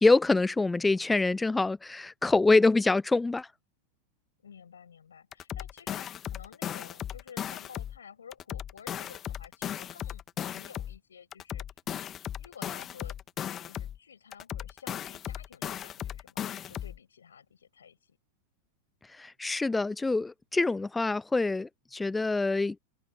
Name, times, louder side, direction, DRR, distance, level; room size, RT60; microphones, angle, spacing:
voice 1, 0.0-3.5 19.2-22.8, left 3 dB, 10° left, 0.3 m, -25 dB
voice 2, 4.4-11.7 12.4-13.2 13.6-16.4 16.7-18.2, left 7 dB, 70° left, 6.5 m, -52 dB
sound 1, 5.3-8.0 8.3-11.0 11.3-14.0 14.3-17.0, left 10 dB, 25° left, 1.9 m, -37 dB
open air
figure-of-eight pair, 90°, 0 cm